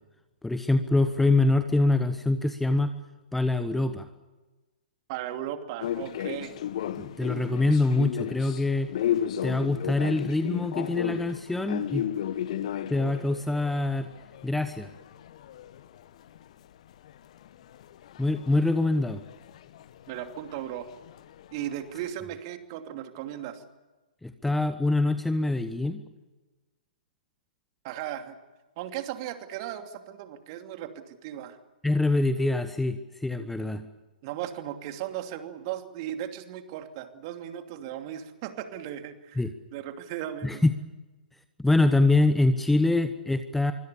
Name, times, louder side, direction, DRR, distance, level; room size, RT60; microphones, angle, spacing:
voice 1, 0.4-2.9 3.3-4.1 7.0-8.9 9.4-12.0 12.9-14.1 14.4-14.9 18.2-19.2 24.2-26.0 31.8-33.8 39.4-39.5 40.4-40.7 41.6-43.7, left 2 dB, 5° left, 10 dB, 1.1 m, -24 dB
voice 2, 5.1-6.5 20.1-20.9 21.5-23.6 27.8-28.4 28.8-31.6 33.4-33.5 34.2-39.4 39.7-40.6, right 11 dB, 35° right, 7 dB, 2.8 m, -36 dB
sound 1, 5.8-16.7 16.9-22.1, left 10 dB, 45° left, 1.3 m, -35 dB
25.5 x 24.5 x 7.1 m, 1.2 s
figure-of-eight pair, 120°, 5 cm